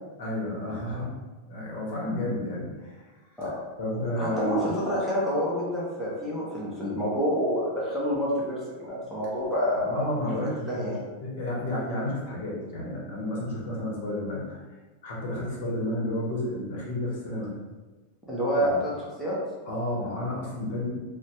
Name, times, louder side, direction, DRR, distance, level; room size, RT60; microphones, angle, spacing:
voice 1, 0.2-1.1 1.5-3.1 3.8-4.7 9.8-14.6 15.0-17.5 18.6-18.8 19.7-21.0, left 1 dB, 60° left, -4 dB, 0.9 m, -31 dB
voice 2, 4.2-10.3 10.7-11.0 18.3-18.9 19.2-19.4, equal, ahead, -8 dB, 0.6 m, -28 dB
3.3 x 2.1 x 2.9 m, 1.2 s
supercardioid pair, 165°, 0 cm